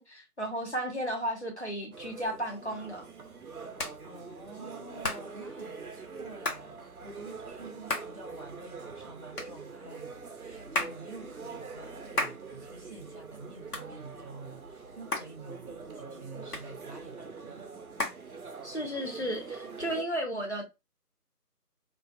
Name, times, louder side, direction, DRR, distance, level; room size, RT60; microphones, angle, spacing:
voice 1, 0.0-3.1 18.6-20.6, equal, 45° left, 0.5 m, -34 dB
sound 1, 1.9-20.0, right 4 dB, 65° right, 0.5 m, -44 dB
Hands, 2.3-18.9, left 1 dB, 70° left, 0.9 m, -39 dB
voice 2, 4.0-17.7, right 2 dB, 45° right, 0.9 m, -48 dB
2.4 x 2.3 x 2.2 m
figure-of-eight pair, 180°, 48 cm